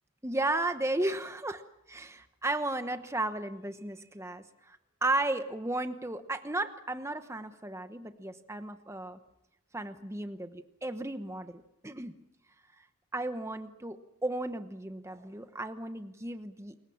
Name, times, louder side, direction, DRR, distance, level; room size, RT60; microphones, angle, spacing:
voice 1, 0.2-1.6 1.9-9.2 9.7-12.1 13.1-16.8, right 2 dB, 15° right, 9 dB, 1.1 m, -34 dB
27.5 x 21.5 x 7.2 m, 0.90 s
head